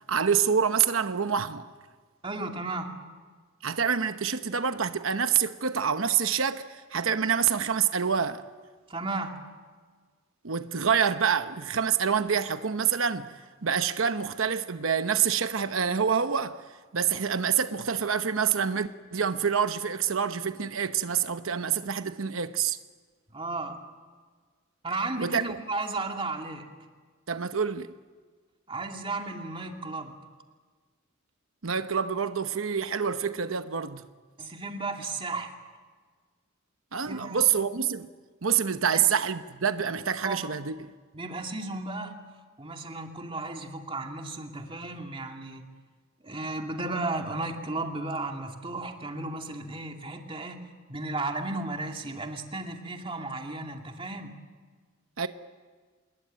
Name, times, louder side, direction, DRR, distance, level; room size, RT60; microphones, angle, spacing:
voice 1, 0.1-1.7 3.6-8.4 10.4-13.3 13.6-16.6 16.9-22.8 25.2-25.6 27.3-27.9 31.6-34.0 36.9-38.1 38.4-40.9 55.2-55.3, right 7 dB, 85° right, 0.9 m, -27 dB
voice 2, 2.2-3.0 8.9-9.4 23.3-23.8 24.8-26.7 28.7-30.2 34.4-35.5 37.0-37.4 38.9-39.0 40.2-40.5 41.1-42.2 42.6-45.6 46.2-50.6 50.9-54.4, right 2 dB, 25° right, 2.5 m, -34 dB
26.5 x 21.5 x 9.3 m
head